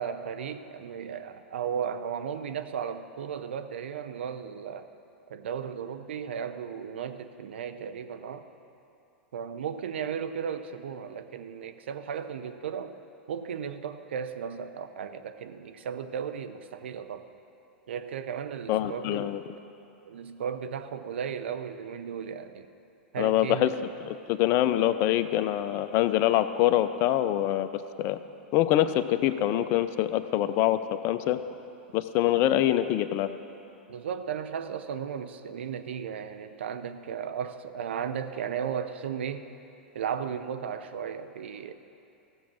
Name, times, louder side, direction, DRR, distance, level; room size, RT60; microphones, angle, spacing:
voice 1, 0.0-4.9 5.3-8.4 9.3-12.9 13.3-17.3 17.9-19.4 20.1-22.7 23.1-23.8 33.9-39.4 39.9-41.7, right 7 dB, 75° right, 9 dB, 0.7 m, -35 dB
voice 2, 18.7-19.4 23.2-23.7 24.0-28.2 28.5-30.8 31.0-31.4 31.9-33.3, left 13 dB, 45° left, 11 dB, 0.6 m, -25 dB
15.0 x 7.2 x 6.2 m, 2.7 s
hypercardioid pair, 105°, 6 cm